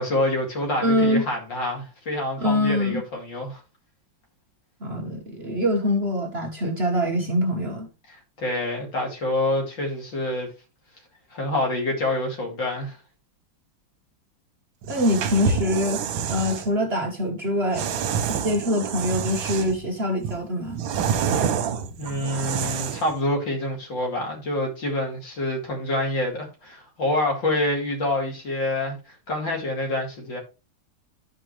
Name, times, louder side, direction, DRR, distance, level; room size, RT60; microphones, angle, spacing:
voice 1, 0.0-3.6 8.1-10.5 11.3-13.0 21.4-21.6 22.0-30.4, left 1 dB, 70° left, 3.3 m, -27 dB
voice 2, 0.8-1.2 2.4-3.0 4.8-7.9 14.9-16.0 16.3-17.9 18.4-20.8, left 1 dB, 40° right, 1.2 m, -24 dB
sound 1, 14.8-16.7 17.7-19.8 20.2-23.1, right 7 dB, 85° right, 1.6 m, -27 dB
12.5 x 5.2 x 3.1 m
omnidirectional pair, 2.1 m